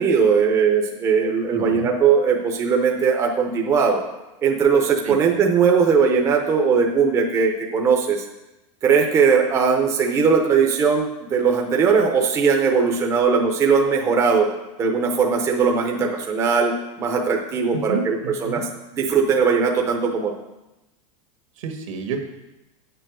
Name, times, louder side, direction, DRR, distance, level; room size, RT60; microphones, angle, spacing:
voice 1, 0.0-4.0 4.4-8.2 8.8-14.5 14.8-20.3, right 5 dB, 15° right, 2 dB, 0.7 m, -19 dB
voice 2, 1.5-1.9 5.0-5.2 17.9-18.6 21.6-22.3, right 5 dB, 75° right, 5 dB, 1.7 m, -29 dB
8.6 x 6.8 x 6.1 m, 0.98 s
supercardioid pair, 165°, 17 cm